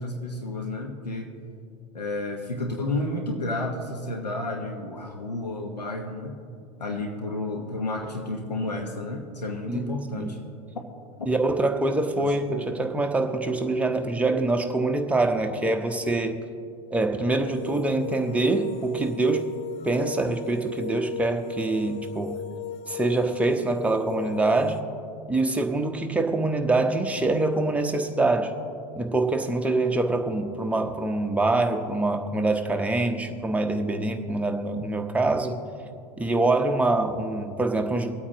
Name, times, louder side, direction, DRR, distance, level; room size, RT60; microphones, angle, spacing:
voice 1, 0.0-1.3 1.9-6.4 6.8-10.4 10.7-10.8 12.2-12.6, left 2 dB, 80° left, 2 dB, 1.2 m, -31 dB
voice 2, 9.7-10.3 11.3-16.3 16.9-19.5 19.8-22.4 22.9-24.8 25.3-28.5 29.0-35.6 36.2-38.1, right 2 dB, 5° right, 3 dB, 1.0 m, -25 dB
sound 1, 17.4-24.8, left 8 dB, 30° left, 0.6 m, -37 dB
24.0 x 8.6 x 3.0 m, 2.5 s
figure-of-eight pair, 85°, 21 cm